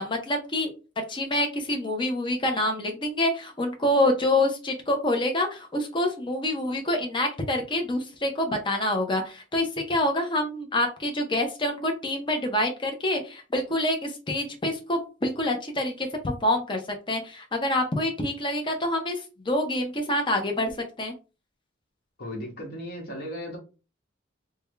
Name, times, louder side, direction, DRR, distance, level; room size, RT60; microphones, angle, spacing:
voice 1, 0.0-16.8 17.1-19.2 19.5-20.7 21.0-21.1, left 1 dB, 25° left, 3 dB, 0.6 m, -26 dB
voice 2, 22.2-23.6, equal, 55° left, 0 dB, 1.3 m, -36 dB
3.4 x 2.2 x 3.3 m, 0.32 s
head